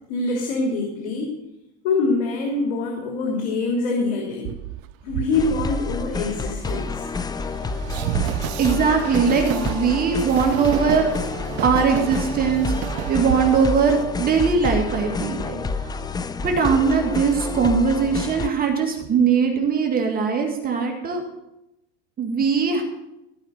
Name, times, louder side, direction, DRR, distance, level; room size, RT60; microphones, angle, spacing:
voice 1, 0.1-1.4 1.8-4.5 5.0-7.1 9.0-9.2, left 3 dB, 85° left, 0 dB, 2.9 m, -25 dB
Train, 4.4-14.9, right 15 dB, 50° right, 0.6 m, -31 dB
sound 1, 5.3-18.5, left 3 dB, 10° left, 0.5 m, -29 dB
voice 2, 8.6-11.1 11.6-16.2 16.4-21.2 22.2-22.8, right 5 dB, 30° right, 2 dB, 2.1 m, -21 dB
15.5 x 5.8 x 7.8 m, 0.89 s
supercardioid pair, 125°, 32 cm